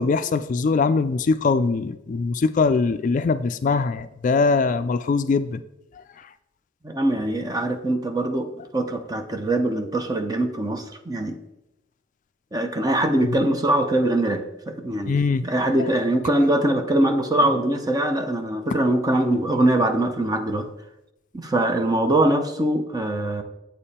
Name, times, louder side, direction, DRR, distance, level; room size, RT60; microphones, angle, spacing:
voice 1, 0.0-5.6 6.0-6.1 15.1-15.4, left 4 dB, 40° left, 11 dB, 0.3 m, -22 dB
voice 2, 6.8-11.4 12.5-20.7 21.3-23.4, right 1 dB, 20° right, 5 dB, 0.7 m, -22 dB
8.0 x 7.0 x 4.2 m, 0.91 s
head